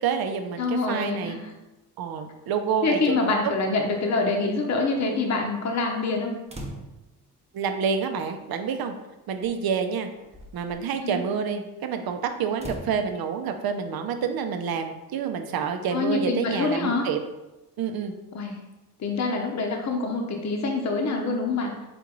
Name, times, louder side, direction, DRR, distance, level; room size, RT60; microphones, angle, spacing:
voice 1, 0.0-1.4 2.0-3.5 7.5-8.9 9.3-10.1 10.5-17.2 17.8-18.1, right 6 dB, 60° right, 7 dB, 0.7 m, -28 dB
voice 2, 0.6-1.4 2.8-6.3 11.0-11.2 15.9-17.1 18.3-18.5 19.0-21.7, left 3 dB, 40° left, 2 dB, 0.8 m, -26 dB
sound 1, 6.5-7.2 8.4-8.5 9.4-9.6 10.2-10.8 12.5-13.0, right 1 dB, 15° right, 0.8 m, -39 dB
4.3 x 3.1 x 3.8 m, 1.0 s
cardioid pair, 80°, 41 cm